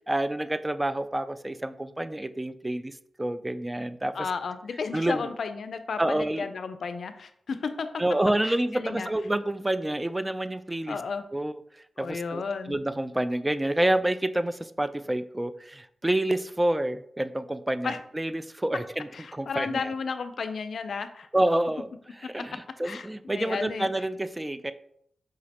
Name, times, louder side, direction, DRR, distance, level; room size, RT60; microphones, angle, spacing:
voice 1, 0.1-2.9 3.2-4.2 4.9-5.3 6.0-6.5 8.0-11.0 11.3-11.5 12.0-12.4 12.7-19.9 21.3-21.9 22.3-24.7, right 1 dB, 20° right, 12 dB, 0.3 m, -28 dB
voice 2, 4.1-7.9 8.4-9.1 10.9-11.2 12.0-12.8 17.8-18.0 19.1-21.3 22.8-23.9, left 5 dB, 75° left, 9 dB, 0.4 m, -33 dB
4.9 x 2.9 x 2.8 m, 0.69 s
cardioid pair, 50°, 0 cm